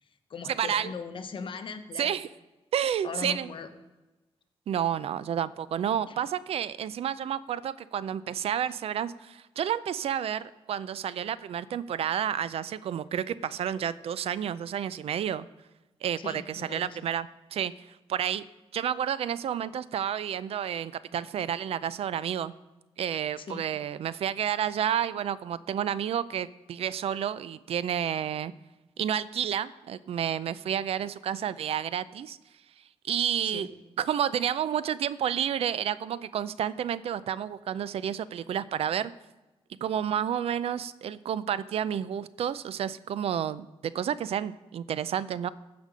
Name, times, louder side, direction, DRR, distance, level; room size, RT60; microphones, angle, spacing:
voice 1, 0.0-2.2 3.0-3.7 6.1-6.2 16.2-17.1 23.4-23.6 33.4-33.7, left 5 dB, 55° left, 8 dB, 1.0 m, -39 dB
voice 2, 0.6-0.9 2.0-2.3 2.7-3.5 4.7-15.5 16.0-17.7 18.1-18.4 18.7-22.6 23.0-28.5 29.0-32.4 33.1-33.7 34.0-39.1 39.8-43.7 43.9-45.5, right 9 dB, 70° right, 17 dB, 0.4 m, -30 dB
14.5 x 5.2 x 5.1 m, 1.1 s
wide cardioid pair, 120°, 10 cm